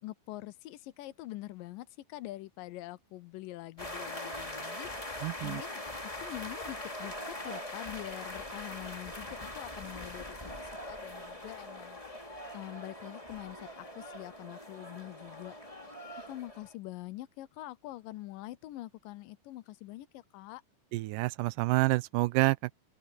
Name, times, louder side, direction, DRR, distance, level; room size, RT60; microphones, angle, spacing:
voice 1, 0.0-5.1 5.4-5.8 6.2-12.0 12.5-15.6 16.3-20.6, left 16 dB, 90° left, 2.4 m, -45 dB
sound 1, 3.8-16.7, left 1 dB, 10° left, 2.3 m, -42 dB
voice 2, 5.2-5.6 20.9-22.7, right 20 dB, 85° right, 2.2 m, -28 dB
open air
omnidirectional pair, 3.8 m